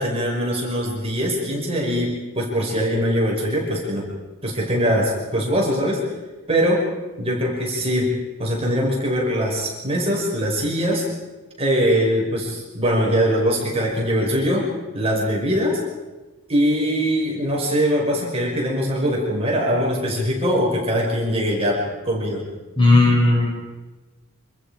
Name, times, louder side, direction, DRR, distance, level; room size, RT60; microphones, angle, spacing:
voice 1, 0.0-4.1 4.4-6.0 6.5-6.8 7.2-8.1 8.4-11.0 11.6-14.7 14.9-15.8 16.5-22.4, equal, 30° right, -2 dB, 5.7 m, -22 dB
voice 2, 22.8-23.5, left 2 dB, 25° left, -3 dB, 7.5 m, -15 dB
27.0 x 26.5 x 5.0 m, 1.2 s
head